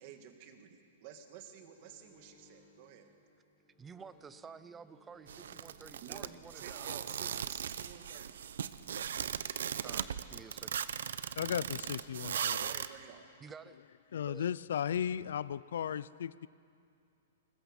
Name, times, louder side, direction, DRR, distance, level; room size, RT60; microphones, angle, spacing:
voice 1, 0.0-3.1 6.0-8.4 12.3-13.2, right 9 dB, 40° right, 6 dB, 2.0 m, -52 dB
sound 1, 1.5-7.1, left 2 dB, 5° left, 4.6 m, -65 dB
voice 2, 3.8-7.5 9.8-10.8 13.4-13.8 14.3-14.4, right 6 dB, 10° right, 15 dB, 0.5 m, -52 dB
sound 2, 5.3-12.9, right 8 dB, 80° right, 0.7 m, -38 dB
voice 3, 11.4-12.6 14.1-16.5, left 9 dB, 75° left, 19 dB, 0.5 m, -35 dB
21.0 x 20.5 x 7.2 m, 2.4 s
hypercardioid pair, 160°, 0 cm